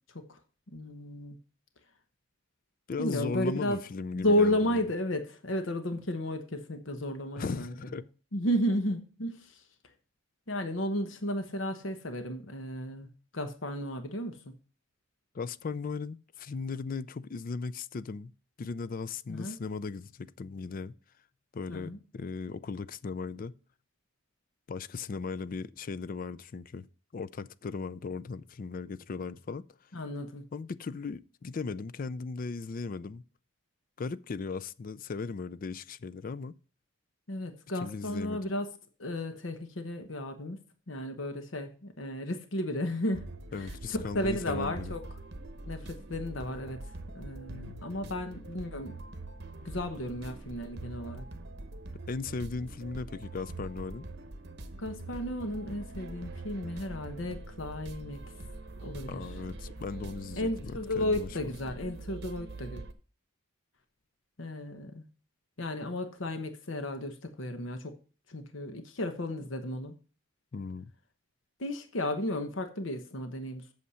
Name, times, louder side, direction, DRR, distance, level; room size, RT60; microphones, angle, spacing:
voice 1, 0.7-1.4 3.0-3.8 4.1-7.7 8.3-9.6 10.5-13.1 13.3-14.5 19.3-19.6 21.7-22.0 29.9-30.4 37.3-38.7 39.0-40.6 40.9-43.3 43.5-45.0 45.7-46.8 47.1-49.0 49.6-51.3 54.8-58.2 58.8-59.1 60.4-62.8 64.4-65.0 65.6-67.9 68.3-69.9 71.6-73.7, left 1 dB, 65° left, 1.0 m, -33 dB
voice 2, 2.9-4.8 7.4-8.0 15.3-18.3 18.6-20.9 21.5-23.5 24.7-26.9 27.1-29.6 30.5-33.2 34.0-36.5 37.8-38.4 43.5-44.9 52.1-54.0 59.1-61.5 70.5-70.9, left 4 dB, 40° left, 0.4 m, -37 dB
sound 1, 43.1-62.9, right 2 dB, 55° right, 1.1 m, -43 dB
8.5 x 6.5 x 5.6 m
head